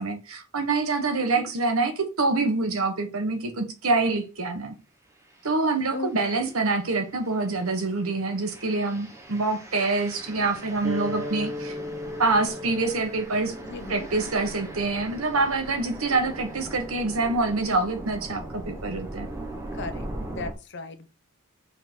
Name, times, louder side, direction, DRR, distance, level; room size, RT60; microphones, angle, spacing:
voice 1, 0.0-4.7 5.4-11.8 12.2-13.5 13.9-19.3, right 3 dB, 85° right, 1.3 m, -26 dB
voice 2, 1.2-1.5 5.9-6.5 13.6-14.1 19.7-21.1, left 3 dB, 55° left, 0.8 m, -37 dB
sound 1, 5.3-5.5 6.1-20.5, right 1 dB, 15° right, 1.0 m, -40 dB
sound 2, 10.8-16.0, left 1 dB, 35° right, 1.5 m, -37 dB
5.8 x 3.9 x 4.5 m
head